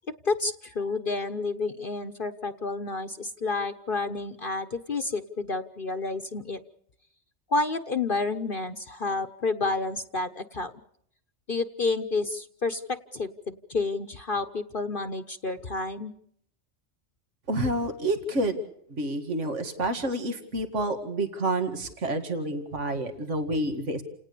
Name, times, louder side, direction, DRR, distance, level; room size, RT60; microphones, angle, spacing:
voice 1, 0.2-6.6 7.5-10.7 11.5-16.1, left 3 dB, 45° left, 10 dB, 1.2 m, -30 dB
voice 2, 17.5-18.6 18.9-24.0, right 1 dB, 65° right, 7 dB, 2.4 m, -29 dB
29.5 x 18.5 x 6.9 m, 0.71 s
omnidirectional pair, 1.3 m